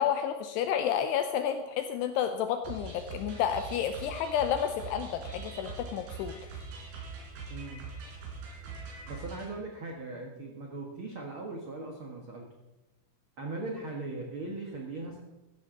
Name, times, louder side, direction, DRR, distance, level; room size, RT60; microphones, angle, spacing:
voice 1, 0.0-6.3, left 9 dB, 80° left, 7 dB, 2.7 m, -30 dB
sound 1, 2.6-9.5, right 4 dB, 65° right, 5.1 m, -43 dB
voice 2, 7.5-7.9 9.1-12.5 13.4-15.2, right 2 dB, 85° right, 0 dB, 1.1 m, -39 dB
15.0 x 14.0 x 3.9 m, 1.0 s
omnidirectional pair, 5.0 m